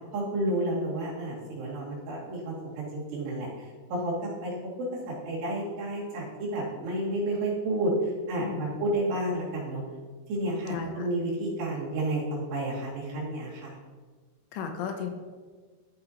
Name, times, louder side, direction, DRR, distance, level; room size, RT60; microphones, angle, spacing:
voice 1, 0.1-3.5 3.9-9.8 10.3-13.8, right 1 dB, 70° right, -4 dB, 4.2 m, -31 dB
voice 2, 8.4-8.8 10.7-10.9 14.5-15.1, left 6 dB, 85° left, 5 dB, 3.1 m, -34 dB
13.0 x 4.5 x 4.1 m, 1.4 s
omnidirectional pair, 5.1 m